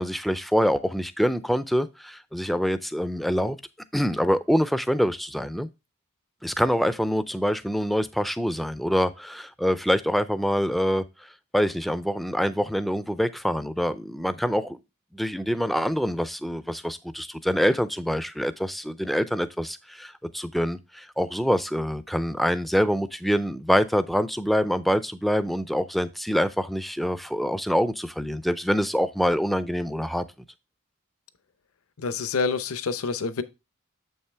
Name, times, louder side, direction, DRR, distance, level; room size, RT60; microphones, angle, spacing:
voice 1, 0.0-3.6 3.9-5.7 6.4-14.8 15.1-30.2, equal, ahead, 0.3 m, -25 dB
voice 2, 32.0-33.4, left 5 dB, 70° left, 0.7 m, -27 dB
7.3 x 5.6 x 3.3 m
head